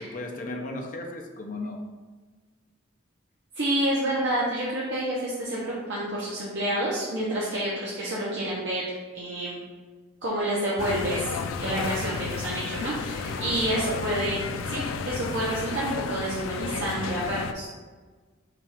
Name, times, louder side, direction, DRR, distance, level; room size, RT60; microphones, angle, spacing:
voice 1, 0.0-2.0 12.1-12.3 13.2-14.1, left 2 dB, 40° left, 2 dB, 0.5 m, -37 dB
voice 2, 3.5-8.8 9.1-9.6 10.2-11.3 11.6-14.4 14.7-17.7, right 1 dB, 60° right, -7 dB, 0.8 m, -28 dB
sound 1, 10.8-17.5, left 5 dB, 90° left, 0.3 m, -32 dB
5.7 x 2.4 x 3.5 m, 1.4 s
head